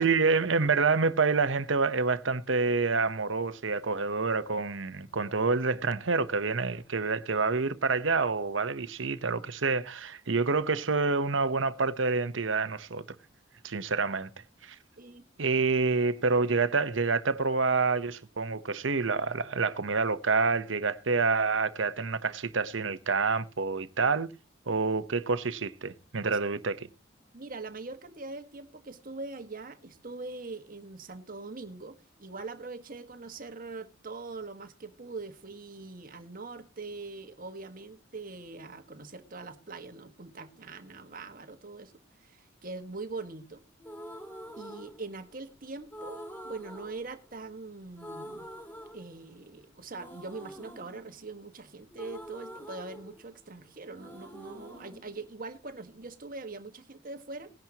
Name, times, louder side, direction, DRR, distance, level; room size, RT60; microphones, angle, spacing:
voice 1, 0.0-13.0 13.6-14.3 14.6-14.7 15.4-24.3 24.7-26.9, right 4 dB, 80° right, 1.0 m, -27 dB
voice 2, 27.3-41.9 42.2-43.6 44.6-48.5 48.9-57.5, right 3 dB, 45° right, 1.6 m, -42 dB
sound 1, 43.8-45.5 45.9-47.7 47.9-49.5 49.9-53.6 53.9-55.9, equal, 10° left, 3.2 m, -46 dB
19.0 x 10.5 x 2.9 m
head